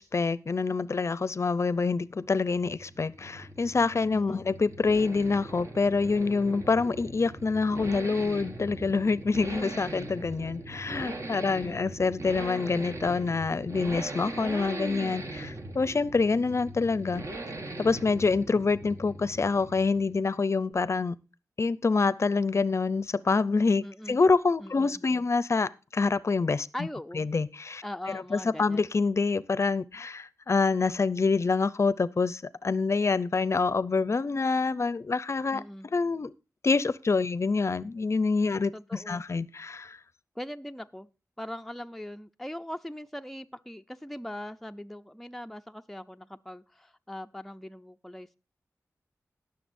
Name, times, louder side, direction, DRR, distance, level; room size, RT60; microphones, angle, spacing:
voice 1, 0.0-17.2 17.8-21.2 21.6-26.7 27.2-27.8 28.1-35.6 35.9-36.3 36.6-40.0, left 4 dB, 50° left, 0.5 m, -26 dB
sound 1, 2.2-20.3, right 2 dB, 50° right, 1.4 m, -40 dB
voice 2, 4.1-4.4 11.4-11.8 23.8-24.2 24.6-25.2 26.7-27.3 27.8-28.9 35.5-35.9 38.7-39.2 40.4-41.1 41.4-48.4, left 1 dB, 5° left, 0.5 m, -41 dB
20.0 x 6.8 x 2.6 m
wide cardioid pair, 75°, 6 cm